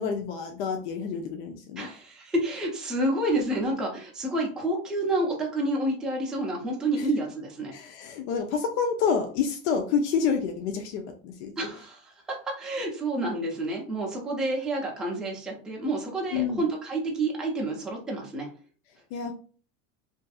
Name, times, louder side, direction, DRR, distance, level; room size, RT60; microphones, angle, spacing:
voice 1, 0.0-1.9 7.0-7.1 7.7-11.5 16.3-16.6 19.1-19.3, left 6 dB, 70° left, 4 dB, 0.5 m, -28 dB
voice 2, 1.8-7.7 11.6-18.5, right 1 dB, ahead, -2 dB, 0.4 m, -29 dB
2.5 x 2.5 x 2.3 m, 0.40 s
supercardioid pair, 135°, 36 cm